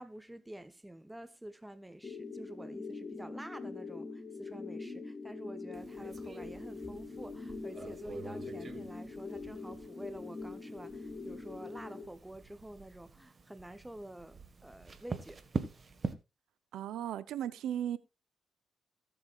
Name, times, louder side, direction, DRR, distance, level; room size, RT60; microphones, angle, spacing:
voice 1, 0.0-15.4, right 1 dB, 10° right, 0.8 m, -48 dB
sound 1, 2.0-12.0, left 4 dB, 25° left, 4.6 m, -43 dB
sound 2, 5.7-16.1, right 4 dB, 40° right, 1.5 m, -45 dB
voice 2, 16.7-18.0, right 10 dB, 85° right, 0.6 m, -36 dB
17.5 x 7.8 x 2.4 m
cardioid pair, 75°, 0 cm